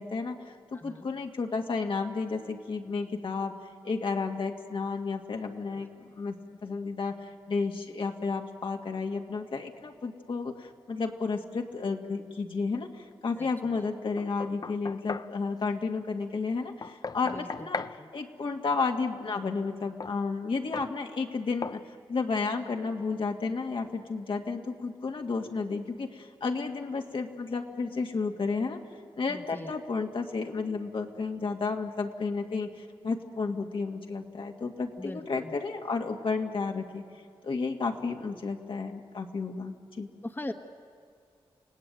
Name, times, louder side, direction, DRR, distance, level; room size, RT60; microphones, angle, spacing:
voice 1, 0.0-3.5 3.8-6.3 6.6-17.9 18.1-28.8 29.2-37.0 37.4-40.1, left 4 dB, 65° left, 2 dB, 2.1 m, -32 dB
voice 2, 0.7-1.1 13.4-13.5 17.3-17.5 18.0-18.1 29.3-29.7 35.0-35.5 40.2-40.5, left 2 dB, 20° left, 6 dB, 1.4 m, -39 dB
Knock, 14.2-15.3 16.8-18.0 20.0-20.2 20.7-20.9 21.6-21.8, left 4 dB, 45° left, 0.6 m, -37 dB
29.5 x 17.5 x 9.2 m, 2.3 s
cardioid pair, 70°, 10 cm